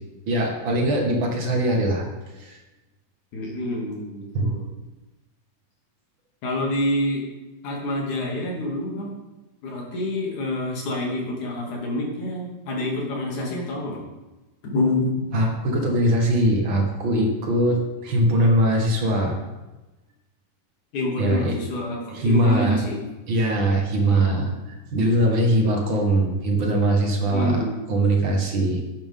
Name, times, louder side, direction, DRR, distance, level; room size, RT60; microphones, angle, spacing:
voice 1, 0.3-2.1 2.3-2.6 4.3-4.5 15.3-19.4 21.2-21.6 22.1-22.8 23.3-27.6 27.9-28.8, right 1 dB, 45° right, 1 dB, 2.0 m, -21 dB
voice 2, 3.3-4.7 6.4-7.2 7.6-9.3 9.6-14.0 14.7-15.4 20.9-23.0 24.1-24.5 27.3-27.7, left 1 dB, 70° left, -2 dB, 3.9 m, -27 dB
12.0 x 10.5 x 3.7 m, 1.1 s
omnidirectional pair, 3.6 m